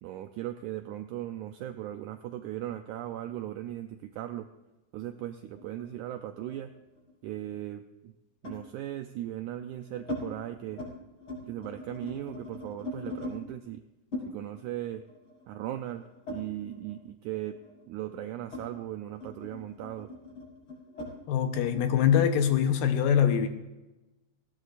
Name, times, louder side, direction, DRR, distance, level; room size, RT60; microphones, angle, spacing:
voice 1, 0.0-4.5 4.9-6.7 7.2-8.1 8.4-10.8 11.4-13.8 14.3-15.0 15.5-17.6 17.9-20.1, right 12 dB, 85° right, 7 dB, 1.7 m, -38 dB
sound 1, 5.6-7.2 8.4-8.7 9.4-10.2 10.6-10.9 11.2-13.4 14.1-17.0 17.3-22.3, left 2 dB, 35° left, 6.0 m, -42 dB
voice 2, 21.3-23.5, left 8 dB, 75° left, 7 dB, 2.6 m, -23 dB
19.0 x 17.0 x 2.5 m, 1.1 s
omnidirectional pair, 4.1 m